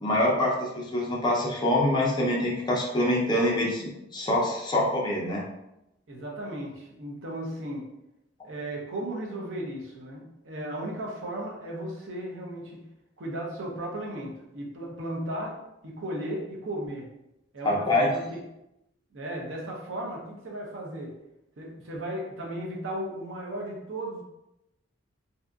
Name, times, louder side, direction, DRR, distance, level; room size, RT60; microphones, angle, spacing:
voice 1, 0.0-5.4 17.6-18.1, left 1 dB, 25° left, -3 dB, 0.6 m, -25 dB
voice 2, 6.1-7.9 8.4-12.8 13.2-17.1 17.5-18.2 19.1-21.2 21.6-24.2, right 1 dB, 85° right, -1 dB, 0.7 m, -35 dB
2.7 x 2.5 x 2.3 m, 0.88 s
head